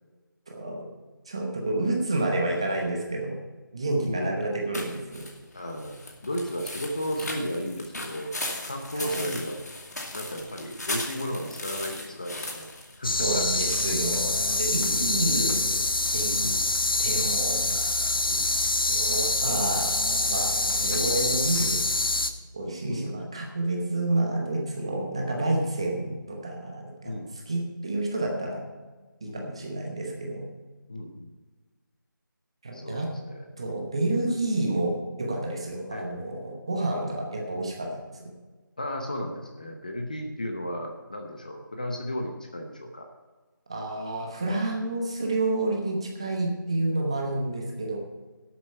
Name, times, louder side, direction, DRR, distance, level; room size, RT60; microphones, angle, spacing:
voice 1, 0.5-0.8 1.3-3.4 3.7-5.2 9.0-9.2 13.2-15.8 16.1-16.4 17.0-18.6 18.9-21.8 22.5-27.1 27.5-28.6 29.2-30.4 32.6-33.1 33.6-34.9 35.2-38.0 43.7-48.0, right 2 dB, 15° right, 1 dB, 0.9 m, -29 dB
voice 2, 4.0-4.4 5.5-8.3 8.6-9.6 10.1-12.7 13.0-13.5 15.0-15.1 16.4-16.7 18.2-18.5 20.8-21.0 22.9-23.3 27.0-27.3 29.3-29.7 30.9-31.4 32.7-33.5 34.1-34.2 35.9-36.2 38.8-43.1, equal, 20° left, 3 dB, 0.7 m, -34 dB
sound 1, 4.7-13.8, left 2 dB, 50° left, 2.3 m, -37 dB
sound 2, 13.0-22.3, left 2 dB, 85° left, 1.2 m, -26 dB
12.0 x 8.4 x 5.6 m, 1.3 s
figure-of-eight pair, 175°, 11 cm